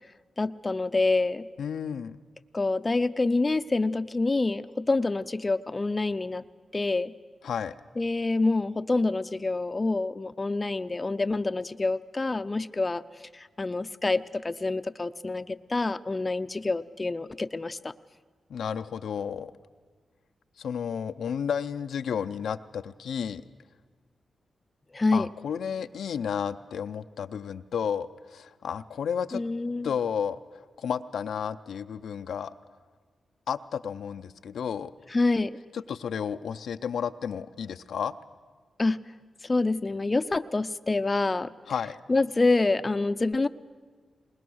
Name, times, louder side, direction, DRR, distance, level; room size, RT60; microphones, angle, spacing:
voice 1, 0.4-1.4 2.5-6.5 6.7-7.1 8.0-13.0 13.3-17.9 24.9-25.3 29.3-29.9 35.1-35.6 38.8-39.0 39.4-41.5 42.1-43.5, left 3 dB, 30° left, 11 dB, 0.5 m, -27 dB
voice 2, 1.6-2.2 7.4-7.7 18.5-19.5 20.6-23.4 25.1-29.4 29.8-32.5 33.5-34.9 35.7-38.1 41.7-42.0, left 7 dB, 85° left, 9 dB, 0.5 m, -32 dB
20.5 x 20.5 x 6.3 m, 1.5 s
cardioid pair, 70°, 0 cm